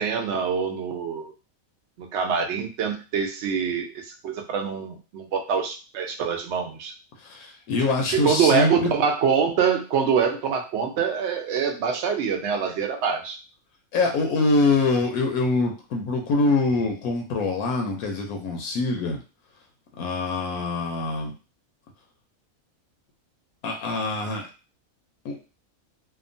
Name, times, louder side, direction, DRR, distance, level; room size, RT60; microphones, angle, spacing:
voice 1, 0.0-1.3 2.0-6.9 8.1-13.4, right 6 dB, 65° right, 3 dB, 0.7 m, -25 dB
voice 2, 7.2-8.9 13.9-19.2 20.0-21.3 23.6-24.5 25.2-25.4, left 3 dB, 85° left, 2 dB, 1.1 m, -24 dB
2.8 x 2.2 x 2.6 m, 0.33 s
omnidirectional pair, 1.5 m